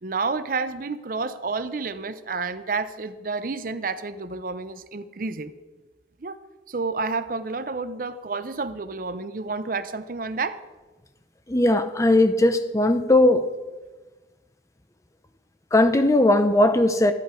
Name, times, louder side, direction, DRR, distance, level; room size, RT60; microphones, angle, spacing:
voice 1, 0.0-5.5 6.2-6.4 6.7-10.6, right 4 dB, 50° right, 0.6 m, -30 dB
voice 2, 11.5-13.4 15.7-17.1, left 1 dB, 15° left, 0.6 m, -18 dB
13.0 x 10.5 x 5.0 m
head